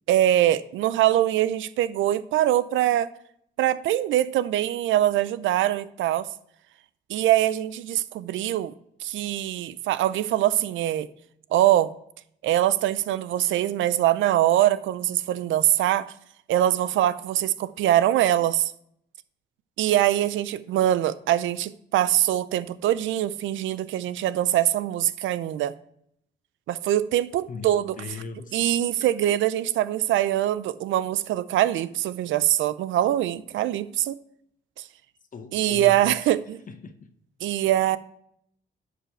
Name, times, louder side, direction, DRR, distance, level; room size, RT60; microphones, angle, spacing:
voice 1, 0.1-3.1 3.6-6.3 7.1-8.7 9.0-11.1 11.5-11.9 12.4-16.1 16.5-18.7 19.8-25.7 26.7-28.0 28.5-34.2 35.5-36.6 37.4-38.0, right 13 dB, 80° right, 0.5 m, -23 dB
voice 2, 27.5-28.6 29.0-29.3 35.3-36.3 36.7-37.1, left 5 dB, 40° left, 0.9 m, -40 dB
10.0 x 5.1 x 4.5 m
cardioid pair, 90°, 20 cm